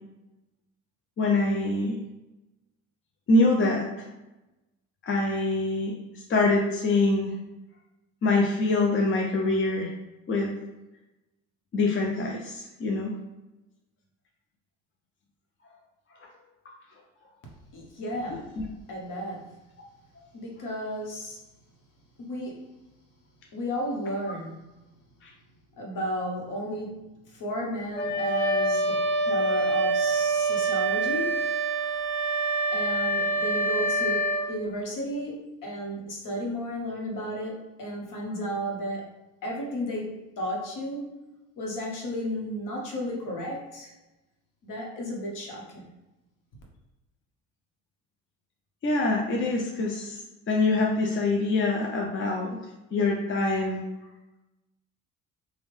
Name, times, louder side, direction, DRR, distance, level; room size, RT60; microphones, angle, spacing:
voice 1, 1.2-2.0 3.3-4.1 5.0-7.3 8.2-9.9 10.3-10.5 11.7-13.1 25.2-25.3 48.8-50.2 50.5-52.6 52.9-53.8, left 2 dB, 30° left, 0 dB, 0.6 m, -25 dB
voice 2, 17.7-18.5 18.9-19.6 20.3-21.4 22.2-22.8 23.5-24.7 25.8-31.4 32.7-39.1 39.4-41.2 41.6-43.9 44.6-45.9, equal, 55° left, -1 dB, 1.1 m, -33 dB
Wind instrument woodwind instrument, 27.9-34.5, right 2 dB, 5° left, 1.2 m, -26 dB
3.3 x 2.3 x 3.2 m, 1.0 s
hypercardioid pair, 60°, 39 cm